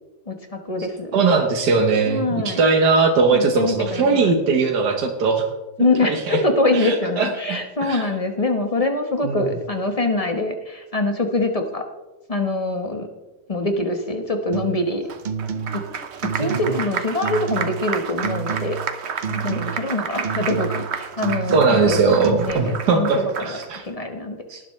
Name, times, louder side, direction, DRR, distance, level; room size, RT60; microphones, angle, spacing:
voice 1, 0.3-1.2 2.1-2.6 3.3-4.3 5.8-11.8 12.3-13.1 13.5-15.1 15.7-15.8 16.3-18.8 19.3-24.4, left 2 dB, 25° left, 5 dB, 1.1 m, -24 dB
voice 2, 1.1-5.4 6.0-6.4 6.7-8.0 9.2-9.4 16.4-16.6 21.5-23.2 23.4-23.8 24.5-24.6, right 4 dB, 90° right, 3 dB, 1.7 m, -20 dB
sound 1, 14.5-14.9 15.2-15.9 16.2-16.9 17.2-17.9 18.2-18.9 19.2-19.9 20.2-20.9 21.2-21.9 22.2-22.5, right 6 dB, 70° right, 0.4 m, -29 dB
Applause, 15.1-23.8, right 6 dB, 50° right, 1.0 m, -31 dB
18.5 x 11.0 x 3.2 m, 1.1 s
omnidirectional pair, 1.7 m